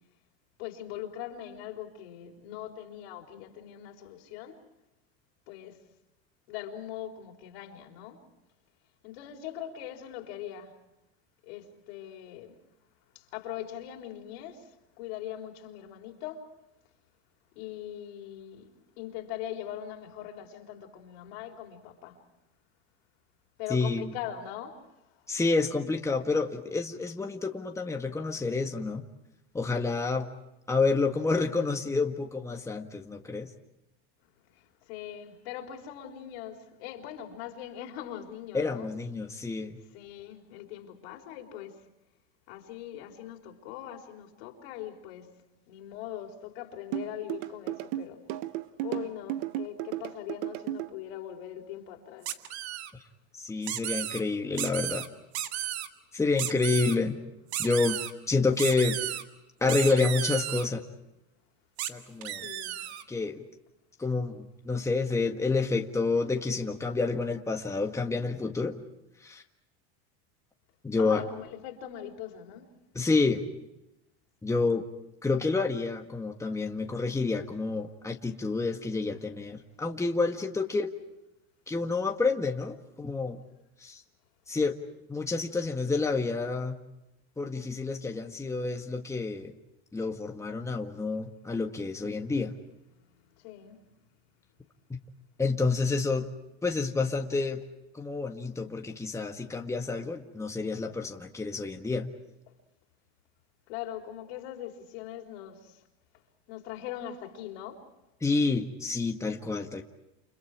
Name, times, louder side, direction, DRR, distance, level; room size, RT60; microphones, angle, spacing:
voice 1, 0.6-4.6 5.5-5.8 6.5-8.2 9.0-10.7 11.5-12.5 13.1-14.7 15.0-16.5 17.6-18.7 19.0-22.2 23.6-24.8 34.9-38.9 39.9-41.8 42.5-45.4 45.7-48.2 48.8-52.3 62.4-62.8 71.0-72.7 80.4-80.7 93.4-93.8 103.7-105.8 106.5-107.9, left 11 dB, 75° left, 4.0 m, -41 dB
voice 2, 23.7-24.1 25.3-29.1 29.5-30.3 30.7-33.5 38.5-39.8 53.4-55.1 56.1-57.2 57.6-58.0 58.3-59.0 59.6-60.8 61.9-62.5 63.1-63.4 64.0-68.8 69.2-69.4 70.8-71.2 72.9-73.4 74.4-74.9 75.2-80.9 81.7-83.4 83.8-84.0 84.5-84.8 85.1-86.8 87.4-89.5 89.9-92.5 94.9-95.0 95.4-96.3 96.6-97.6 97.9-102.1 108.2-109.8, left 3 dB, 10° left, 1.7 m, -29 dB
sound 1, 46.9-50.9, right 14 dB, 65° right, 1.3 m, -34 dB
sound 2, 52.3-52.9 53.6-54.2 54.6-55.1 55.3-55.9 56.4-57.0 57.5-58.1 58.6-59.2 59.7-60.7 61.8-61.9 62.2-63.0, right 12 dB, 85° right, 1.8 m, -33 dB
30.0 x 28.5 x 4.9 m
supercardioid pair, 120°, 32 cm